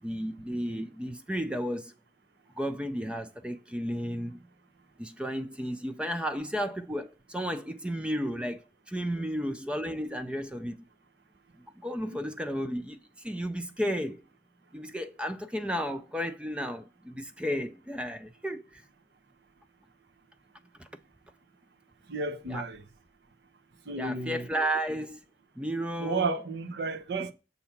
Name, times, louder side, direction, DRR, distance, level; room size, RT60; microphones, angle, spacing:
voice 1, 0.0-1.9 2.6-4.4 5.0-10.8 11.8-14.2 14.7-18.8 20.8-20.9 22.5-22.6 23.9-25.2 25.6-26.4, equal, 5° right, 0.3 m, -33 dB
voice 2, 22.1-22.8 23.9-24.5 26.0-27.3, right 3 dB, 70° right, 0.7 m, -32 dB
6.8 x 2.7 x 5.6 m
head